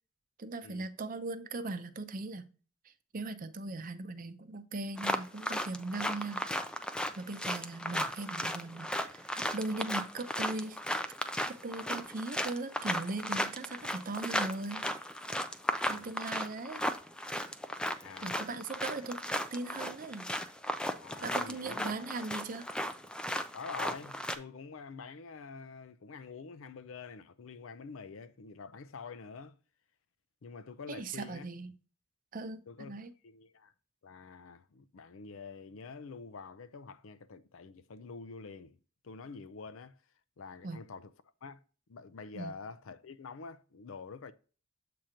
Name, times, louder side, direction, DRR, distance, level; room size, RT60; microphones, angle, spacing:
voice 1, 0.4-2.4 2.9-6.5 7.2-10.8 11.5-14.9 15.9-16.8 18.2-20.3 21.2-22.7 30.9-31.7 32.3-33.1 40.6-40.8 42.3-42.5, right 2 dB, 40° right, 0.6 m, -39 dB
sound 1, 5.0-24.4, equal, 5° left, 0.4 m, -35 dB
voice 2, 15.6-16.1 18.0-18.4 21.0-22.2 23.5-29.6 30.4-31.5 32.7-33.7 34.0-38.8 39.0-40.0 40.4-41.1 41.4-41.6 41.9-44.3, left 4 dB, 75° left, 0.5 m, -47 dB
7.6 x 2.9 x 4.9 m
head